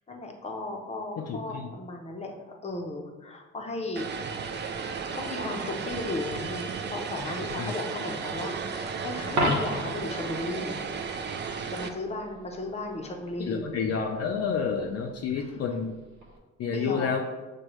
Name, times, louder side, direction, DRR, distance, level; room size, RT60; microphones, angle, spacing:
voice 1, 0.1-4.1 4.8-10.8 11.7-13.7 15.4-15.5 16.7-17.1, left 2 dB, 20° left, 2 dB, 0.7 m, -35 dB
voice 2, 1.2-1.7 7.6-7.7 13.4-16.0 16.6-17.2, left 6 dB, 55° left, 2 dB, 0.5 m, -29 dB
Vehicle, 4.0-11.9, right 5 dB, 35° right, 0.4 m, -34 dB
Coin (dropping), 9.3-10.1 16.2-16.4, equal, 65° right, 0.9 m, -27 dB
6.2 x 2.3 x 3.0 m, 1.2 s
cardioid pair, 90°, 30 cm